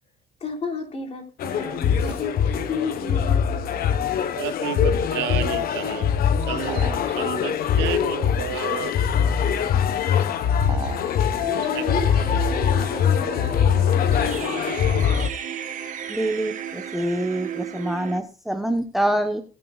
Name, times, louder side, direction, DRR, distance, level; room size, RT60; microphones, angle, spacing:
voice 1, 0.4-3.6 10.2-10.8 11.5-15.0, left 3 dB, 35° left, 3.4 m, -34 dB
sound 1, 1.4-15.3, left 8 dB, 55° left, 1.2 m, -22 dB
voice 2, 4.3-6.2 6.5-8.9 10.6-10.7 11.7-11.8, right 14 dB, 85° right, 1.1 m, -31 dB
sound 2, 6.7-7.1 10.7-11.1, right 7 dB, 25° right, 0.5 m, -33 dB
sound 3, 11.4-18.2, right 9 dB, 45° right, 1.7 m, -34 dB
voice 3, 16.1-19.4, right 1 dB, ahead, 1.1 m, -25 dB
20.5 x 7.7 x 2.4 m
cardioid pair, 115°, 18 cm